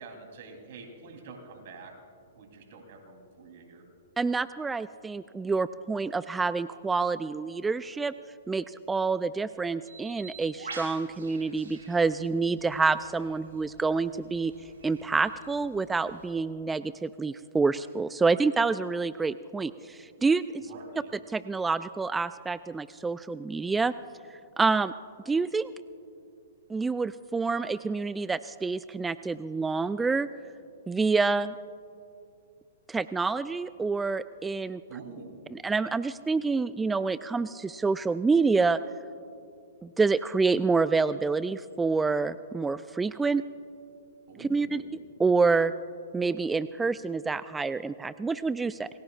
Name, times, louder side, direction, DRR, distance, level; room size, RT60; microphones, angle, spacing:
voice 1, 0.0-1.9 2.3-3.8 20.6-21.1 34.9-35.4 44.3-44.9, right 4 dB, 55° right, 4 dB, 3.3 m, -46 dB
voice 2, 4.2-8.1 8.5-14.5 14.8-20.6 21.3-23.9 24.6-24.9 25.3-25.7 26.7-30.3 30.9-31.5 32.9-34.8 35.5-38.8 39.8-43.4 44.4-44.8 45.2-45.7 46.1-48.9, right 4 dB, 10° right, 15 dB, 0.3 m, -27 dB
Bird, 9.9-16.3, right 3 dB, 70° right, 4.5 m, -48 dB
27.5 x 20.5 x 2.4 m, 2.5 s
hypercardioid pair, 115°, 0 cm